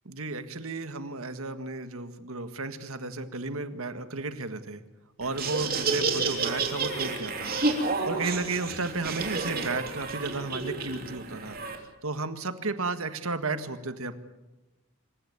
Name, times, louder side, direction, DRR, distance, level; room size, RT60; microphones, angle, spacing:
voice 1, 0.1-4.8 5.2-11.6 12.0-14.1, right 3 dB, 75° right, 9 dB, 1.7 m, -33 dB
Laughter, 5.2-11.8, right 4 dB, 40° right, 3.1 m, -30 dB
26.0 x 15.5 x 8.9 m, 1.1 s
head